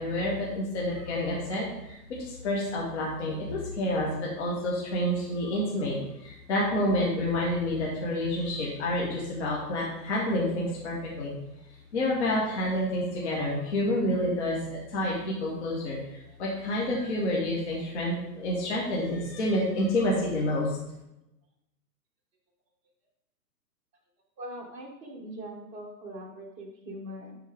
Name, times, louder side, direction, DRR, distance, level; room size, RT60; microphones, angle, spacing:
voice 1, 0.0-11.3 11.9-20.8, left 1 dB, 45° left, -4 dB, 1.9 m, -29 dB
voice 2, 24.4-27.4, equal, 15° right, -1 dB, 1.1 m, -41 dB
10.5 x 4.5 x 3.7 m, 0.90 s
figure-of-eight pair, 125°, 49 cm